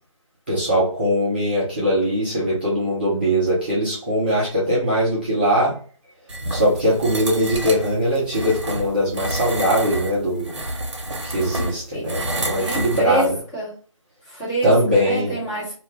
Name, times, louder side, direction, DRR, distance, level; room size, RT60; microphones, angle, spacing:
voice 1, 0.5-5.7 6.5-10.6 11.2-13.3 14.6-15.3, equal, 20° right, -8 dB, 0.4 m, -21 dB
sound 1, 6.3-13.3, right 1 dB, 60° right, 0.7 m, -29 dB
voice 2, 12.6-13.7 14.3-15.7, right 2 dB, 15° left, -7 dB, 0.9 m, -26 dB
2.3 x 2.2 x 3.0 m, 0.41 s
figure-of-eight pair, 160°, 17 cm